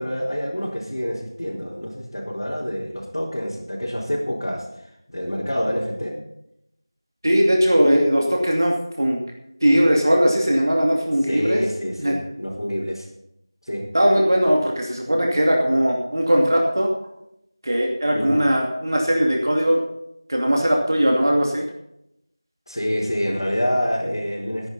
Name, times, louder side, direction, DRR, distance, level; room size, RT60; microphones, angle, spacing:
voice 1, 0.0-6.2 11.3-13.1 13.6-13.8 18.1-18.4 22.7-24.7, equal, 75° left, -6 dB, 4.2 m, -27 dB
voice 2, 7.2-9.2 9.6-11.6 12.0-12.2 13.9-16.9 17.6-19.8 20.3-21.7, equal, 55° right, 0 dB, 2.6 m, -19 dB
18.0 x 10.5 x 4.2 m, 0.79 s
figure-of-eight pair, 175°, 2 cm